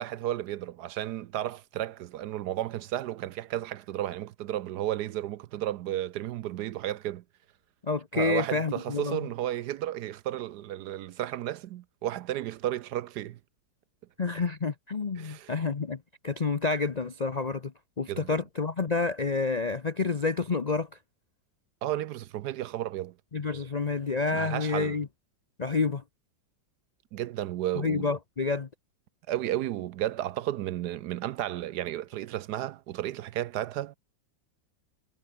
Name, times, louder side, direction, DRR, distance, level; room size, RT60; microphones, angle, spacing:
voice 1, 0.0-7.2 8.1-13.4 15.2-15.5 18.1-18.4 21.8-23.1 24.3-25.0 27.1-28.1 29.3-34.0, right 13 dB, 70° right, 1.1 m, -33 dB
voice 2, 7.8-9.2 14.2-17.7 18.0-20.9 23.3-25.1 25.6-26.0 27.8-28.7, left 4 dB, 50° left, 0.4 m, -29 dB
omnidirectional pair, 2.0 m